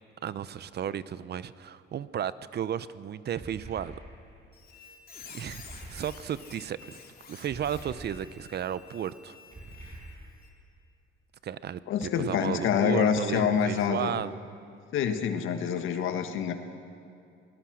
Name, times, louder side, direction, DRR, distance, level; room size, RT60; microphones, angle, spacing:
voice 1, 0.2-3.9 5.3-5.6 5.9-7.0 7.3-9.4 11.4-14.3, right 9 dB, 55° right, 16 dB, 0.7 m, -34 dB
sound 1, 3.4-4.4 5.4-6.5 7.5-8.5 9.5-10.6, right 1 dB, 35° right, 5.9 m, -46 dB
Squeak, 4.5-10.5, left 6 dB, 50° left, 3.0 m, -50 dB
voice 2, 11.9-14.2 14.9-16.5, left 7 dB, 80° left, 7 dB, 1.7 m, -26 dB
25.0 x 18.5 x 6.4 m, 2.6 s
cardioid pair, 90°, 20 cm